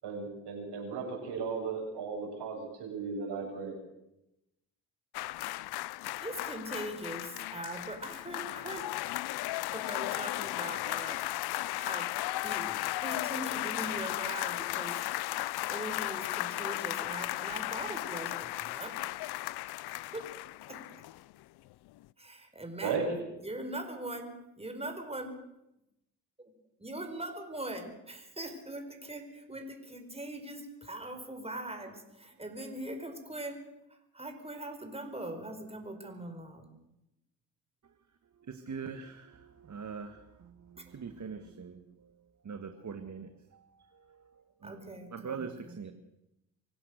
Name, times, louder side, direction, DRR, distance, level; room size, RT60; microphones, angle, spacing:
voice 1, 0.0-3.8 22.8-23.2, right 5 dB, 70° right, 1 dB, 7.7 m, -35 dB
sound 1, 5.1-21.4 21.7-21.9, left 17 dB, 65° left, 0.7 m, -35 dB
voice 2, 6.2-8.8 9.7-11.3 11.8-12.2 12.4-15.3 15.7-19.0 19.9-20.1 20.7-20.8 22.2-25.4 26.8-33.6 33.9-36.7 44.6-45.8, right 1 dB, 15° right, 5 dB, 4.8 m, -41 dB
voice 3, 38.5-40.2 40.9-41.8 42.5-43.3 44.6-44.7 45.1-45.9, right 6 dB, 40° right, 8 dB, 1.9 m, -41 dB
25.0 x 16.0 x 6.7 m, 0.88 s
hypercardioid pair, 50°, 43 cm